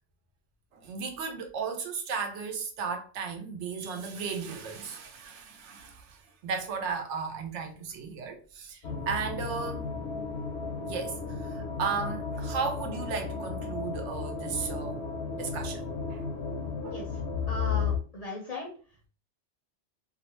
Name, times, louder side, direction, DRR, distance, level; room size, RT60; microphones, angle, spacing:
voice 1, 0.7-9.9 10.9-15.1 15.3-16.3 16.8-17.0, right 5 dB, 80° right, 0.9 m, -35 dB
sound 1, 8.8-18.0, left 5 dB, 70° left, 0.8 m, -34 dB
voice 2, 17.5-18.7, left 1 dB, 45° left, 0.6 m, -37 dB
2.5 x 2.0 x 3.0 m
omnidirectional pair, 1.2 m